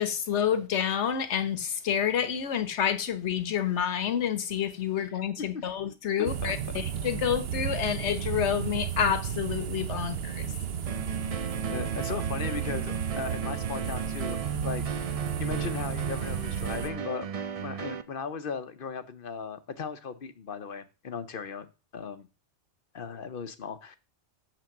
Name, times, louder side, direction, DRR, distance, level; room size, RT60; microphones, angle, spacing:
voice 1, 0.0-10.5, left 8 dB, 75° left, 1.3 m, -29 dB
voice 2, 6.2-6.5 11.7-17.3 17.6-22.3 22.9-24.0, left 6 dB, 55° left, 0.8 m, -37 dB
sound 1, 6.2-16.9, right 8 dB, 60° right, 0.9 m, -33 dB
sound 2, 10.9-18.0, right 6 dB, 45° right, 0.5 m, -35 dB
6.0 x 5.9 x 7.0 m
omnidirectional pair, 1.2 m